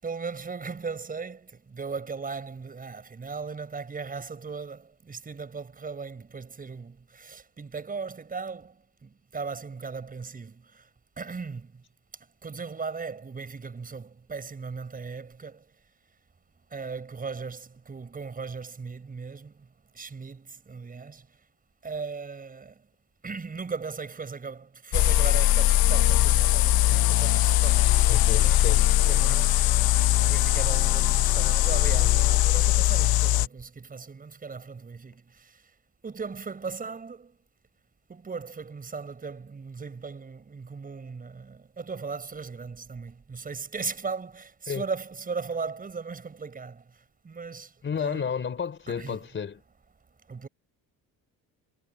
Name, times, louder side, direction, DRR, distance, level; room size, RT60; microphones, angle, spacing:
voice 1, 0.0-10.9 11.2-11.8 12.4-15.7 16.7-19.7 19.9-21.3 21.8-22.9 23.2-29.8 30.2-35.7 36.0-37.4 38.1-48.3 49.0-49.2 50.3-50.5, right 5 dB, 25° right, 5.9 m, -38 dB
sound 1, 24.9-33.5, left 14 dB, 80° left, 1.0 m, -21 dB
voice 2, 28.1-28.8 44.7-44.8 47.8-49.6, left 6 dB, 35° left, 4.4 m, -31 dB
cardioid pair, 170°, 36 cm